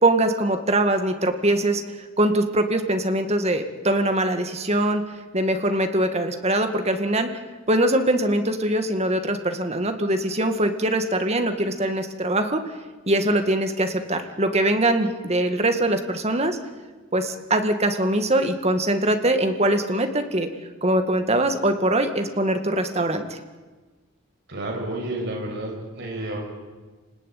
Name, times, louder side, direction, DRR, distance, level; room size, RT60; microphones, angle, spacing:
voice 1, 0.0-1.8 2.2-5.0 5.3-7.3 7.7-12.6 13.1-16.6 17.1-20.5 20.8-23.4, right 1 dB, 30° right, 7 dB, 2.1 m, -22 dB
voice 2, 24.5-26.4, right 1 dB, 55° right, -1 dB, 6.9 m, -30 dB
28.0 x 19.5 x 9.4 m, 1.3 s
head